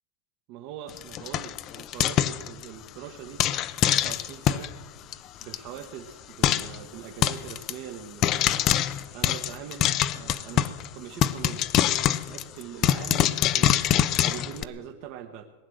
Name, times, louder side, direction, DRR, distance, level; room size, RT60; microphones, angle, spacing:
voice 1, 0.5-3.4 3.8-4.7 5.4-8.6 9.1-11.7 12.2-13.8 14.2-15.4, right 9 dB, 55° right, 3 dB, 1.1 m, -42 dB
Frying (food), 0.9-2.9 3.4-4.7 5.1-5.2 5.4-5.6 5.8-5.9 6.4-6.8 7.2-7.7 8.2-10.9 11.2-14.6, left 11 dB, 40° left, 0.6 m, -24 dB
19.0 x 9.5 x 7.8 m, 1.4 s
supercardioid pair, 125°, 0 cm